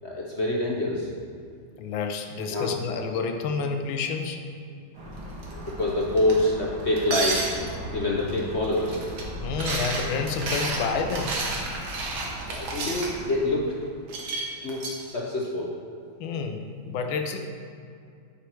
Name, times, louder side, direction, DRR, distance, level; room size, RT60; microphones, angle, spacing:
voice 1, 0.0-1.1 2.5-2.7 5.5-7.5 7.9-9.0 12.5-13.7 14.6-15.7, left 1 dB, 50° left, -2 dB, 0.8 m, -26 dB
voice 2, 1.8-4.4 9.4-11.3 16.2-17.4, left 5 dB, 90° left, 5 dB, 1.5 m, -29 dB
sound 1, 4.9-13.4, right 1 dB, 60° right, 2.1 m, -38 dB
sound 2, 5.4-5.7 6.2-6.4 7.0-7.8 8.3-8.4 8.6-9.2 9.5-13.1 14.1-15.0, right 3 dB, 80° right, 2.1 m, -31 dB
10.0 x 5.7 x 4.5 m, 2.3 s
omnidirectional pair, 2.2 m